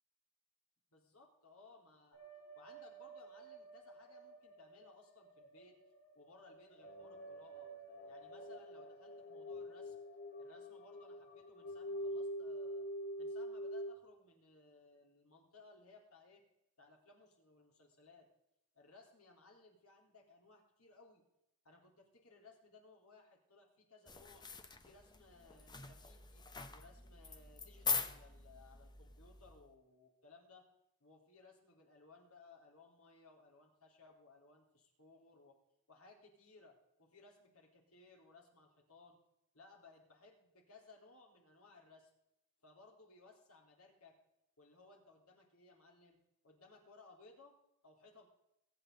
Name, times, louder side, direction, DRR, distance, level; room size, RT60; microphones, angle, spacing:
voice 1, 0.9-2.2 2.6-5.8 6.1-7.7 8.0-9.9 10.4-12.9 13.2-16.4 16.8-18.3 18.7-21.2 21.6-24.5 24.8-26.5 26.7-30.7 31.0-35.6 35.9-39.2 39.5-42.1 42.6-44.2 44.6-47.5 47.8-48.3, left 3 dB, 70° left, 0 dB, 3.8 m, -62 dB
sound 1, 2.1-13.9, equal, 85° left, 4.8 m, -47 dB
sound 2, 24.1-29.7, left 5 dB, 20° left, 0.9 m, -43 dB
23.0 x 8.4 x 4.0 m, 0.84 s
head